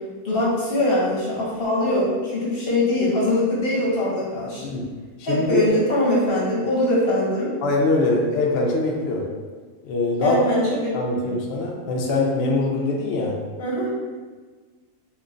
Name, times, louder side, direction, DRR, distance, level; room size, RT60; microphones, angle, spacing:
voice 1, 0.2-4.6 5.2-7.5 10.2-10.9 11.2-11.3 13.6-13.9, left 1 dB, 55° left, -5 dB, 0.7 m, -22 dB
voice 2, 5.2-5.7 7.6-9.2 9.8-10.4 10.9-13.4, left 2 dB, 85° left, -1 dB, 0.5 m, -23 dB
4.4 x 2.2 x 2.5 m, 1.4 s
omnidirectional pair, 1.7 m